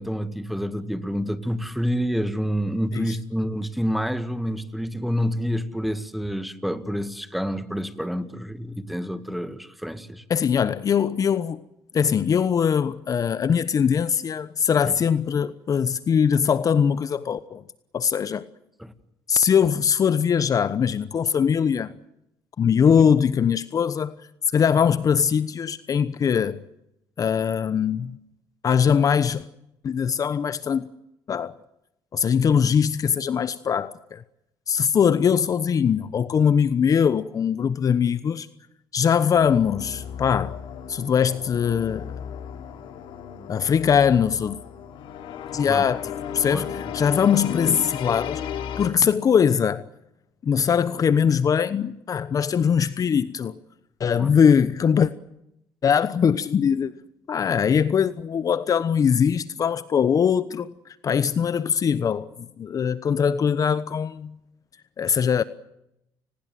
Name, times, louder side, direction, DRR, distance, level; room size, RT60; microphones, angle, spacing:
voice 1, 0.0-10.2 14.8-14.9 18.8-18.9 23.0-23.1 45.6-45.9 46.5-46.7 54.2-54.3, equal, ahead, 2.1 m, -28 dB
voice 2, 10.3-11.6 11.9-17.6 17.9-18.4 19.3-21.9 22.6-24.1 24.5-26.6 27.2-28.2 28.6-29.5 29.8-30.9 31.3-31.5 32.1-34.2 34.7-38.5 38.9-40.6 40.9-42.1 43.5-44.6 45.5-48.4 48.8-49.8 50.4-53.5 54.0-55.1 55.8-56.9 57.3-60.7 61.0-64.3 65.0-65.4, left 7 dB, 45° left, 1.0 m, -21 dB
sound 1, 39.3-48.9, left 8 dB, 75° left, 3.4 m, -35 dB
29.5 x 20.5 x 7.7 m
cardioid pair, 90°, 8 cm